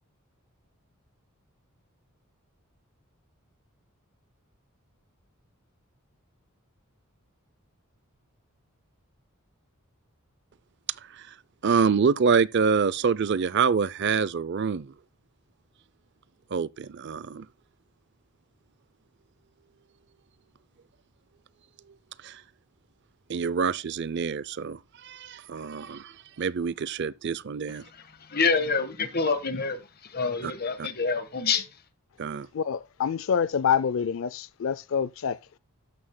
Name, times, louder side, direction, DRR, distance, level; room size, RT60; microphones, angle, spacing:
voice 1, 11.6-14.9 16.5-17.5 22.2-22.4 23.3-27.8 30.4-30.5 30.8-30.9 32.2-32.5, right 5 dB, 50° right, 0.5 m, -26 dB
voice 2, 28.0-31.7, left 4 dB, 45° left, 1.5 m, -27 dB
voice 3, 32.5-35.6, left 7 dB, 60° left, 0.4 m, -27 dB
13.0 x 9.4 x 2.2 m
head